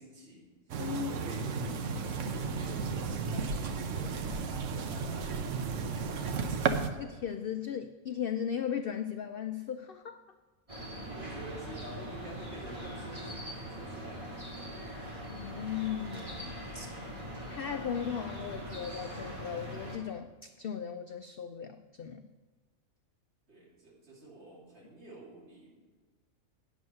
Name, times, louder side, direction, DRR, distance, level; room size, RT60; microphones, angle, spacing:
voice 1, 0.0-0.8 1.1-3.5 3.8-6.5 11.1-14.5 23.5-25.8, right 2 dB, 50° right, -6 dB, 2.8 m, -49 dB
sound 1, 0.7-6.9, right 5 dB, 65° right, 1.0 m, -33 dB
voice 2, 0.8-1.2 7.0-10.2 15.0-17.0 17.5-22.3, left 8 dB, 70° left, 8 dB, 0.5 m, -37 dB
sound 2, 10.7-20.0, equal, 25° right, 2.1 m, -42 dB
9.5 x 7.1 x 5.5 m, 1.4 s
omnidirectional pair, 1.5 m